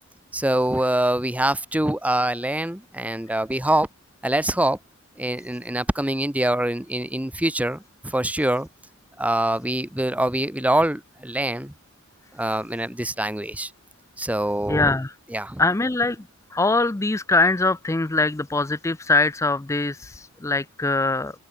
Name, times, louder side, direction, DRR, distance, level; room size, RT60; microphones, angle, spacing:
voice 1, 0.3-3.9 4.2-4.8 5.2-8.7 9.2-11.7 12.3-13.7 14.2-15.0 15.3-15.6, right 1 dB, 5° right, 1.2 m, -24 dB
voice 2, 14.7-15.1 15.6-16.2 16.5-21.3, left 3 dB, 15° left, 0.5 m, -22 dB
open air
head